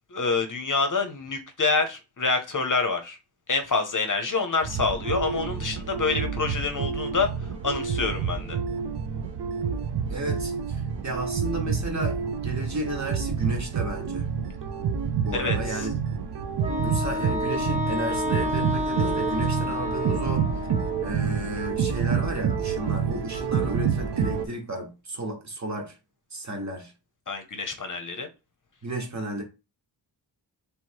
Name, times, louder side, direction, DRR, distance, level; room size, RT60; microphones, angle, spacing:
voice 1, 0.1-3.2 3.5-7.3 7.6-8.6 15.3-15.9 27.3-28.3, left 4 dB, 45° left, 0.7 m, -27 dB
sound 1, 4.6-24.5, right 7 dB, 65° right, 0.6 m, -28 dB
voice 2, 10.1-14.3 15.2-15.9 16.8-20.5 21.0-26.0 26.3-26.9 28.8-29.4, right 1 dB, 40° right, 1.2 m, -33 dB
Wind instrument woodwind instrument, 16.6-21.2, left 3 dB, 15° right, 0.6 m, -30 dB
3.4 x 3.0 x 4.5 m
wide cardioid pair, 140°, 45 cm